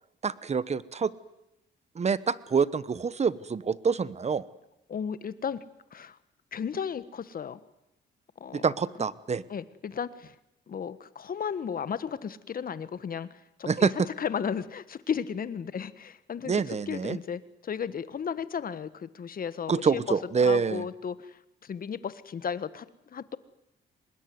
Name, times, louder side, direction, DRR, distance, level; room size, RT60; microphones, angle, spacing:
voice 1, 0.2-1.1 1.9-4.4 8.5-9.4 13.7-13.9 16.5-17.2 19.7-20.9, right 5 dB, 35° right, 17 dB, 1.1 m, -26 dB
voice 2, 4.9-5.6 5.9-6.2 6.5-7.6 8.4-8.7 9.5-10.4 10.7-13.9 14.2-23.4, left 7 dB, 45° left, 15 dB, 1.4 m, -34 dB
25.0 x 20.5 x 9.5 m, 0.89 s
cardioid pair, 90°, 20 cm